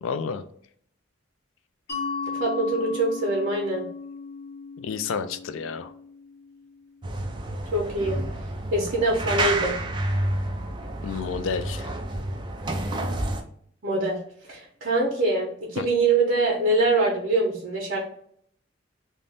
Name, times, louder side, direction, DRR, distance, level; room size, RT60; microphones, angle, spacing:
voice 1, 0.0-0.4 4.8-5.9 11.0-11.9 15.8-15.9, left 5 dB, 75° left, 10 dB, 0.3 m, -30 dB
Mallet percussion, 1.9-7.3, left 5 dB, 50° left, 0.9 m, -36 dB
voice 2, 2.4-3.8 7.7-8.2 8.7-9.7 13.8-14.2 14.5-18.0, right 2 dB, 50° right, -4 dB, 0.8 m, -24 dB
sound 1, 7.0-13.4, right 1 dB, 25° right, 0.3 m, -29 dB
2.6 x 2.2 x 3.2 m, 0.63 s
head